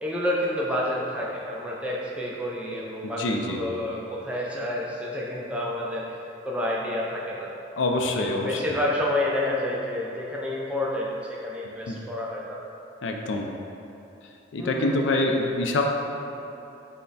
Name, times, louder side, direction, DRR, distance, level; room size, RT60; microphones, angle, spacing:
voice 1, 0.0-6.1 6.4-7.5 8.2-12.6 14.6-15.1, left 1 dB, 5° right, -5 dB, 0.4 m, -29 dB
voice 2, 3.2-3.6 7.8-8.8 11.9-12.0 13.0-13.5 14.5-15.8, left 2 dB, 70° left, 2 dB, 0.4 m, -25 dB
5.5 x 2.1 x 3.9 m, 3.0 s
head